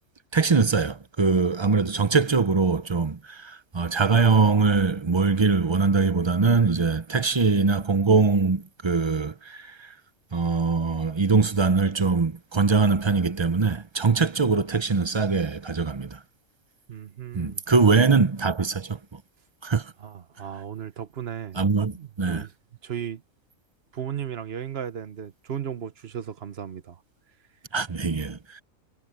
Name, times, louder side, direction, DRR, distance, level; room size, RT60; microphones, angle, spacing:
voice 1, 0.3-9.9 10.3-16.2 17.3-19.2 19.6-19.9 21.5-22.5 27.7-28.6, right 4 dB, 30° right, 0.6 m, -22 dB
voice 2, 16.9-17.6 20.0-22.5 22.8-23.2 23.9-27.0, right 9 dB, 50° right, 1.2 m, -35 dB
omnidirectional pair, 1.4 m